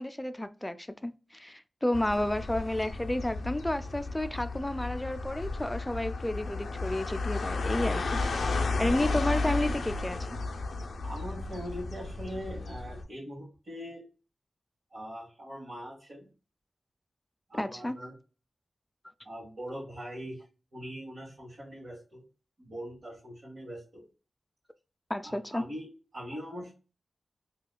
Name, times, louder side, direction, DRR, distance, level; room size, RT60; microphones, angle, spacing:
voice 1, 0.0-8.2 8.5-10.3 17.5-18.0 25.1-25.6, left 1 dB, 15° left, 0.4 m, -31 dB
sound 1, 1.9-13.0, left 3 dB, 90° left, 0.4 m, -33 dB
voice 2, 11.0-14.0 14.9-16.3 17.5-18.1 19.2-20.4 20.7-22.2 22.6-24.0 25.2-26.7, equal, 65° right, 1.5 m, -41 dB
4.7 x 2.3 x 2.2 m
cardioid pair, 50°, 0 cm